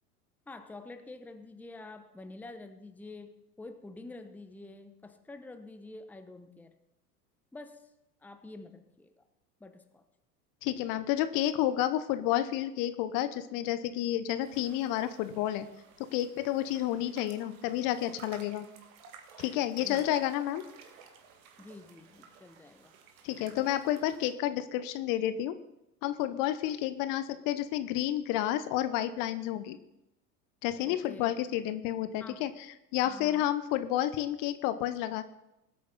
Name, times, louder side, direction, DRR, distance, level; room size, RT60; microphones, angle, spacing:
voice 1, 0.5-6.7 7.5-7.8 8.2-9.1 9.6-10.0 19.8-20.1 21.6-22.9 30.9-31.3 32.2-32.4 33.0-33.5, left 2 dB, 5° left, 8 dB, 0.8 m, -47 dB
voice 2, 10.6-15.7 16.1-18.7 19.4-20.6 23.2-25.6 26.0-29.8 30.6-35.2, left 12 dB, 45° left, 12 dB, 0.9 m, -30 dB
sound 1, 14.4-24.3, right 6 dB, 60° right, 2.1 m, -54 dB
20.5 x 8.5 x 4.1 m, 0.87 s
figure-of-eight pair, 85°, 47 cm